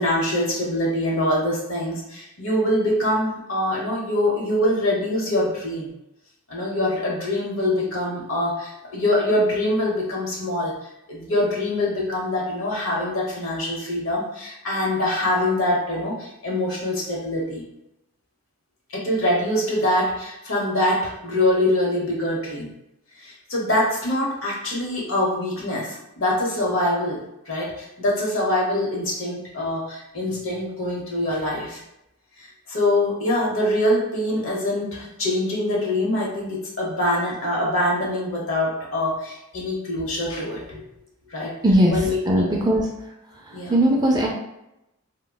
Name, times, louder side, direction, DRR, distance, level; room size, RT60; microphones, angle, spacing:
voice 1, 0.0-5.9 6.5-17.6 18.9-22.7 23.2-31.8 32.4-40.8 41.3-41.6 41.9-42.6 43.5-43.7, left 1 dB, 65° left, -3 dB, 0.9 m, -24 dB
voice 2, 41.6-42.9 43.4-44.3, right 1 dB, 20° right, -1 dB, 0.3 m, -19 dB
3.7 x 2.1 x 2.2 m, 0.87 s
head